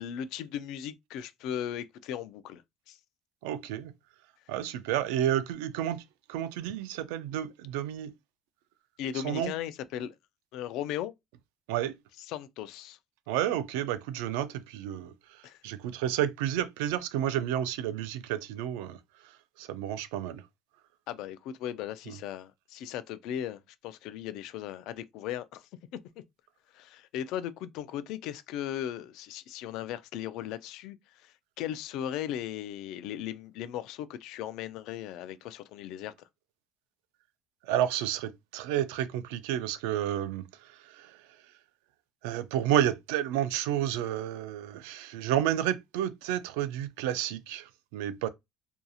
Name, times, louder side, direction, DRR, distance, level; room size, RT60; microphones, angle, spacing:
voice 1, 0.0-3.0 9.0-10.2 10.5-11.1 12.2-13.0 15.4-15.6 21.1-26.2 26.7-36.3, left 10 dB, 70° left, 0.3 m, -37 dB
voice 2, 3.4-3.9 4.5-6.0 6.3-8.1 9.2-9.5 11.7-12.0 13.3-20.5 22.1-22.2 37.6-41.2 42.2-48.3, right 11 dB, 85° right, 0.3 m, -31 dB
2.7 x 2.5 x 2.3 m
supercardioid pair, 100°, 0 cm